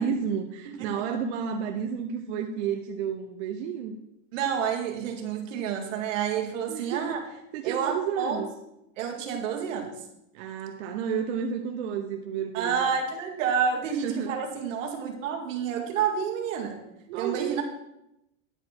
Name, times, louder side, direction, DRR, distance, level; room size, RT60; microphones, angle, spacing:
voice 1, 0.0-4.0 6.7-8.5 10.3-12.9 13.9-14.4 17.1-17.6, right 7 dB, 60° right, 4 dB, 0.8 m, -31 dB
voice 2, 0.7-1.0 4.3-7.2 7.6-8.4 9.0-10.0 12.5-16.8 17.2-17.6, right 7 dB, 85° right, 3 dB, 1.9 m, -29 dB
10.0 x 4.8 x 5.9 m, 0.85 s
supercardioid pair, 175°, 38 cm